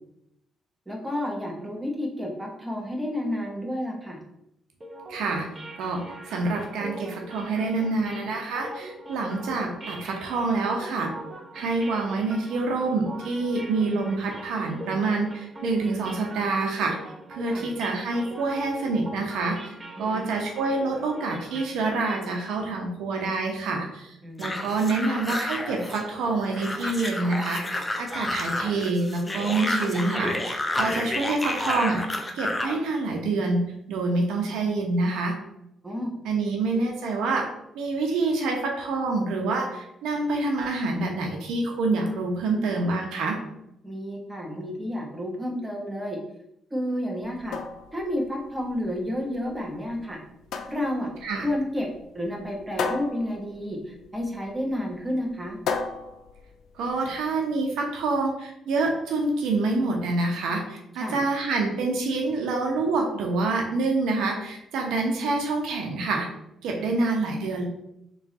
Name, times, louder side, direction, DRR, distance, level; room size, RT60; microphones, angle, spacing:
voice 1, 0.9-4.2 17.5-17.7 20.1-20.3 24.2-24.5 30.8-31.0 35.8-36.1 43.8-46.2 46.7-47.6 47.9-50.2 50.7-51.1 51.4-51.9 52.1-55.6 61.0-61.2 66.8-66.9, left 1 dB, 15° right, 0 dB, 1.1 m, -30 dB
sound 1, 4.8-22.7, right 1 dB, 30° right, 0.8 m, -42 dB
voice 2, 5.1-5.5 5.8-11.1 11.5-17.0 17.3-33.6 33.9-35.3 36.2-37.5 37.7-43.4 51.2-51.5 56.8-66.3 66.6-67.7, right 3 dB, 85° right, 1 dB, 0.9 m, -27 dB
sound 2, 24.4-32.8, left 1 dB, 15° left, 0.6 m, -30 dB
sound 3, 47.2-57.2, left 5 dB, 75° left, 0.4 m, -36 dB
3.5 x 3.2 x 4.1 m, 0.83 s
cardioid pair, 90°, 0 cm